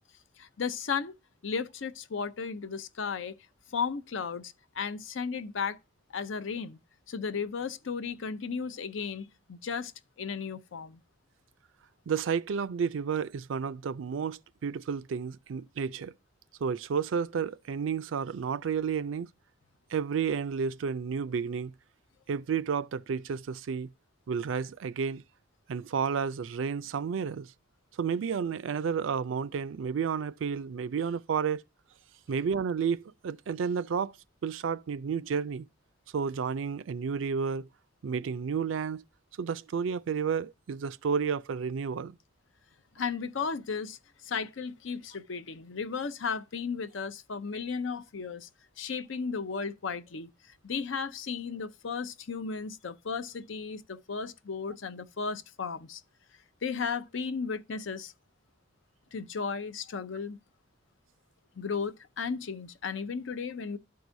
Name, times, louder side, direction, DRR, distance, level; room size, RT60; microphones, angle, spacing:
voice 1, 0.4-1.1 1.4-3.4 3.7-5.8 6.1-6.8 7.1-9.9 10.2-11.0 43.0-48.5 48.8-50.3 50.6-56.0 56.6-58.1 59.1-60.4 61.6-63.8, left 5 dB, 75° left, 0.6 m, -35 dB
voice 2, 12.1-16.1 16.6-19.3 19.9-21.7 22.3-23.9 24.3-25.2 25.7-27.5 28.0-31.6 32.3-34.1 34.4-35.7 36.1-37.7 38.0-39.0 39.4-42.2, right 6 dB, 75° right, 0.4 m, -31 dB
12.0 x 4.7 x 2.6 m
head